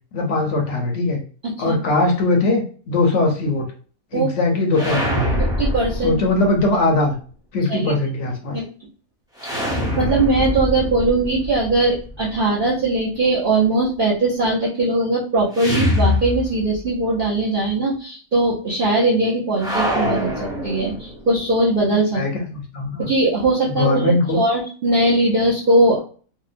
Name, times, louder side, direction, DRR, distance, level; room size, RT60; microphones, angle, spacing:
voice 1, 0.1-1.2 1.6-3.7 4.1-5.3 6.0-7.2 7.5-8.6 22.1-23.1 23.7-24.4, left 2 dB, 65° left, 2 dB, 0.8 m, -20 dB
sound 1, 4.7-6.7 9.4-12.4 15.5-16.9 17.2-17.3 19.6-21.3, left 1 dB, 5° right, 0.4 m, -24 dB
voice 2, 5.6-6.2 7.7-7.9 8.5-8.7 10.0-22.2 23.0-26.0, right 2 dB, 50° right, -6 dB, 0.7 m, -20 dB
2.8 x 2.1 x 2.4 m, 0.41 s
omnidirectional pair, 1.5 m